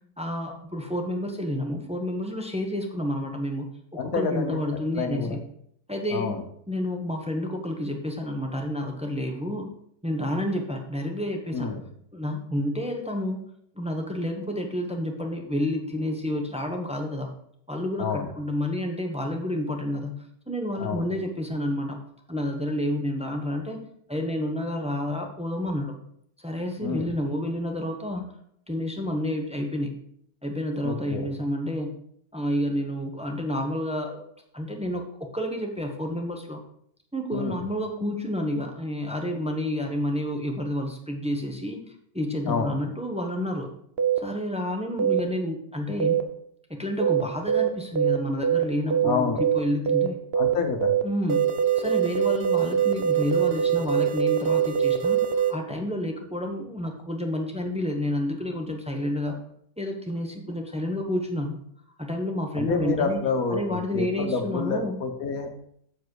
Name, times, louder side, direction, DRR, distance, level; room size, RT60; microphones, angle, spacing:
voice 1, 0.2-3.7 4.0-5.4 5.9-6.4 6.7-9.7 10.0-11.7 12.1-13.4 13.8-17.3 17.7-22.0 22.3-25.9 26.4-28.3 28.7-29.9 30.4-32.0 32.3-34.2 34.5-35.0 35.3-36.6 37.1-43.7 44.2-46.2 46.7-49.3 49.5-50.2 51.0-51.5 51.7-59.4 59.8-61.6 62.0-63.2 63.5-64.9, left 1 dB, 5° right, 2 dB, 0.7 m, -29 dB
voice 2, 4.0-4.6 4.9-5.4 6.1-6.4 11.5-11.8 18.0-18.2 20.8-21.1 26.8-27.1 30.8-31.3 37.3-37.6 42.4-42.7 49.0-49.4 50.3-51.0 62.6-65.5, left 5 dB, 55° left, 6 dB, 1.4 m, -28 dB
sound 1, 44.0-44.2 45.0-45.2 46.0-46.2 47.0-47.2 47.5-47.7 48.0-48.2 48.4-48.6 48.9-49.1 49.4-49.6 49.9-50.1 50.3-50.5 50.8-51.0 51.3-55.5, right 9 dB, 50° right, 0.8 m, -23 dB
7.3 x 7.0 x 4.7 m, 0.68 s
omnidirectional pair, 1.9 m